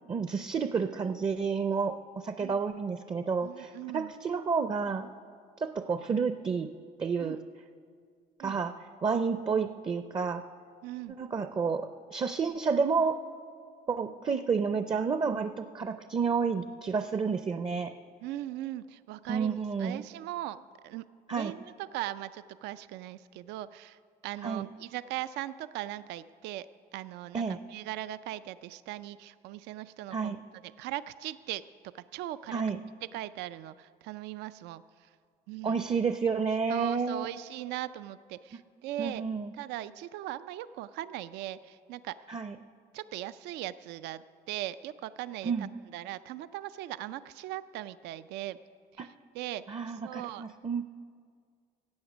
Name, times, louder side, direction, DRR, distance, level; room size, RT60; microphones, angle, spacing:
voice 1, 0.1-5.1 5.6-6.7 7.0-7.4 8.4-8.7 9.0-10.4 11.2-13.2 13.9-17.9 19.3-20.0 21.3-21.5 24.4-24.7 27.3-27.6 30.1-30.4 32.5-32.8 35.6-37.3 39.0-39.5 42.3-42.6 45.4-45.7 49.0-49.1 49.7-50.8, right 5 dB, 30° right, 10 dB, 0.5 m, -30 dB
voice 2, 3.4-4.1 7.2-7.4 8.4-8.6 10.8-11.2 18.2-21.1 21.3-26.7 26.9-31.6 31.9-32.6 33.1-35.1 35.5-35.8 36.7-39.2 39.5-42.2 42.9-48.6 48.9-50.5, right 14 dB, 85° right, 15 dB, 0.4 m, -39 dB
16.0 x 7.9 x 6.1 m, 2.1 s
cardioid pair, 110°, 17 cm